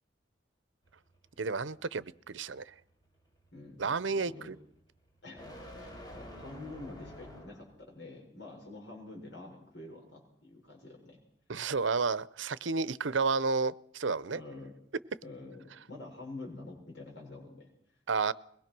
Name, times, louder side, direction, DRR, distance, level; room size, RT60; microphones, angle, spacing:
sound 1, 0.8-7.8, left 1 dB, 20° left, 4.9 m, -50 dB
voice 1, 1.4-2.7 3.8-4.6 11.5-14.4 18.1-18.3, right 4 dB, 80° right, 18 dB, 0.8 m, -31 dB
voice 2, 3.5-4.5 5.2-5.4 5.7-11.2 14.3-14.7 15.2-17.7, left 2 dB, 65° left, 0 dB, 6.2 m, -47 dB
22.5 x 20.5 x 6.1 m, 0.67 s
head